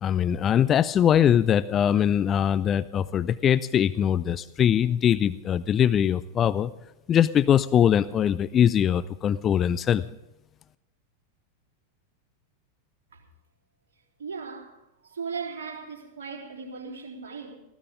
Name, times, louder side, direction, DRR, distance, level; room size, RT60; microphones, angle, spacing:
voice 1, 0.0-6.7 7.1-10.0, left 9 dB, 25° left, 0.5 m, -22 dB
voice 2, 14.2-17.6, right 5 dB, 60° right, 3.8 m, -37 dB
19.5 x 16.0 x 3.6 m
figure-of-eight pair, 90°, 0 cm